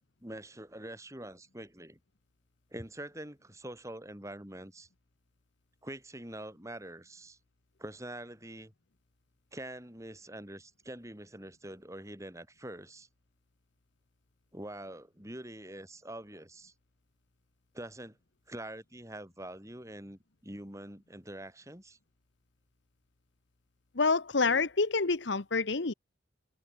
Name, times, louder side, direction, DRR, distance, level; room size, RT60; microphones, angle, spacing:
voice 1, 0.0-2.0 2.7-4.9 5.8-7.4 7.8-8.7 9.5-13.1 14.5-16.7 17.7-18.2 18.5-22.0, right 1 dB, 15° right, 4.1 m, -45 dB
voice 2, 23.9-25.9, left 4 dB, 65° left, 1.0 m, -27 dB
head